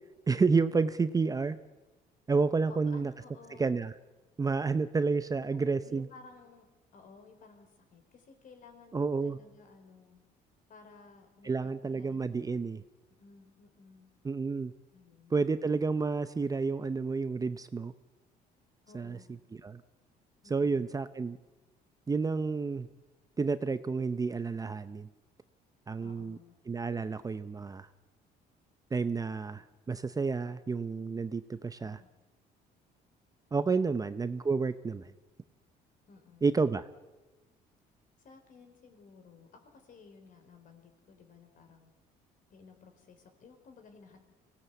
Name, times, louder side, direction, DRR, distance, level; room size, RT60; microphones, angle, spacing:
voice 1, 0.3-1.6 2.3-3.1 3.6-3.9 4.4-6.1 8.9-9.4 11.4-12.8 14.2-14.7 15.3-17.9 18.9-19.2 19.6-19.8 20.5-21.4 22.1-22.9 23.4-25.1 25.9-26.4 26.7-27.9 28.9-32.0 33.5-35.1 36.4-36.9, right 4 dB, 20° right, 12 dB, 0.7 m, -30 dB
voice 2, 2.7-3.9 5.4-6.7 6.9-10.2 10.7-12.7 13.2-14.1 14.9-15.4 18.8-19.4 20.4-20.9 26.0-26.6 31.8-32.1 36.1-36.6 38.2-41.9 42.5-44.2, left 4 dB, 50° left, 6 dB, 4.5 m, -56 dB
24.0 x 17.5 x 8.3 m, 1.2 s
cardioid pair, 110°, 17 cm